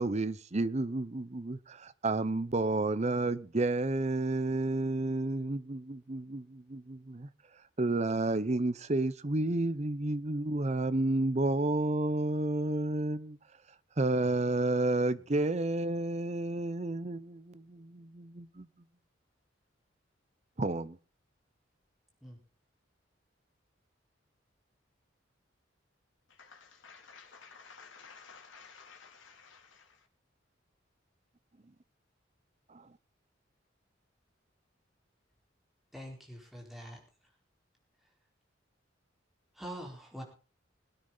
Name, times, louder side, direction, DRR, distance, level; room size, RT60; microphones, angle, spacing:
voice 1, 0.0-7.3 7.8-13.4 14.0-18.7 20.6-21.0, right 2 dB, 35° right, 0.7 m, -31 dB
voice 2, 26.3-30.0, left 5 dB, 90° left, 2.8 m, -54 dB
voice 3, 35.9-37.0 39.5-40.2, equal, ahead, 4.4 m, -44 dB
22.5 x 9.7 x 4.0 m
head